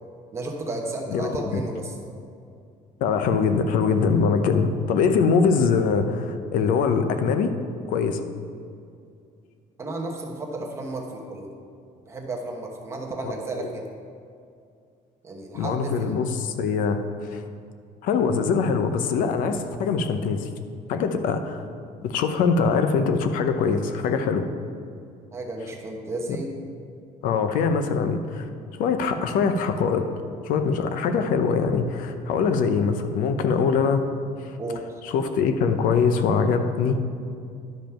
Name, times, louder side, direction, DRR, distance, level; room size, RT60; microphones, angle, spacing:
voice 1, 0.3-1.9 9.8-11.5 12.1-13.8 15.2-16.2 25.3-26.6 34.6-34.8, right 2 dB, 20° right, 0 dB, 1.1 m, -33 dB
voice 2, 1.1-1.6 3.0-7.5 7.9-8.2 13.2-13.3 13.6-13.7 15.5-17.4 18.0-20.5 20.9-21.6 22.0-24.5 26.3-26.4 27.2-30.1 30.4-34.1 34.4-34.6 35.0-37.0, left 5 dB, 70° left, 8 dB, 0.7 m, -23 dB
11.0 x 5.2 x 5.8 m, 2.4 s
cardioid pair, 175°, 15 cm